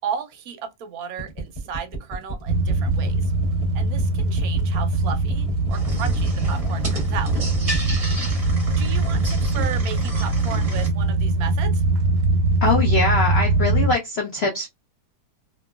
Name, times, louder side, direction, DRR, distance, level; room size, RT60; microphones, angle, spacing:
voice 1, 0.0-3.3 3.7-7.3 8.8-11.8, right 7 dB, 70° right, 1.0 m, -34 dB
sound 1, 1.2-9.7, right 3 dB, 25° left, 0.9 m, -31 dB
sound 2, 2.5-13.9, right 2 dB, 90° right, 1.3 m, -22 dB
sound 3, 5.7-10.9, right 1 dB, 30° right, 0.7 m, -29 dB
voice 2, 12.6-14.7, left 3 dB, 55° left, 0.7 m, -22 dB
2.9 x 2.5 x 2.3 m
omnidirectional pair, 1.8 m